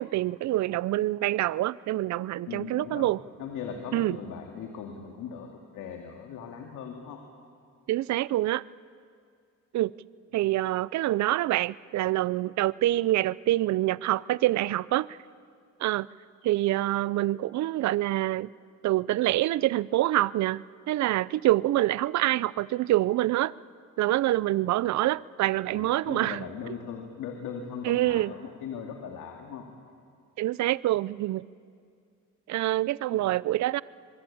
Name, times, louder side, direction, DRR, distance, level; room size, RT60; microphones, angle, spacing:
voice 1, 0.0-3.2 3.9-4.2 7.9-8.6 9.7-9.9 10.3-15.2 15.8-16.1 16.4-18.5 18.8-23.5 24.0-26.4 27.8-28.3 30.4-31.4 32.5-33.8, right 15 dB, 65° right, 0.5 m, -26 dB
voice 2, 2.5-3.1 3.4-7.2 24.4-24.7 25.4-29.7 33.1-33.3, left 7 dB, 90° left, 2.3 m, -39 dB
25.0 x 22.5 x 8.7 m
cardioid pair, 90°, 30 cm